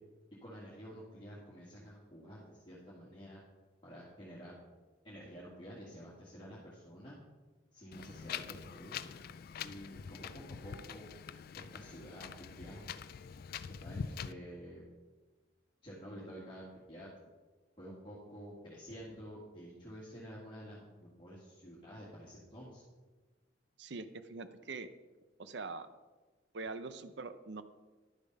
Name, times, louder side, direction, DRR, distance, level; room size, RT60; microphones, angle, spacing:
voice 1, 0.4-3.4 3.8-4.6 5.0-7.2 7.7-9.0 9.6-11.1 11.5-12.8 13.8-14.8 15.8-17.1 17.8-22.8, equal, 25° left, -8 dB, 2.0 m, -50 dB
Wind, 7.9-14.3, left 7 dB, 50° left, 0.3 m, -44 dB
voice 2, 23.8-24.9 25.4-25.9 26.5-27.6, right 3 dB, 60° right, 12 dB, 0.6 m, -43 dB
11.5 x 7.0 x 5.3 m, 1.3 s
head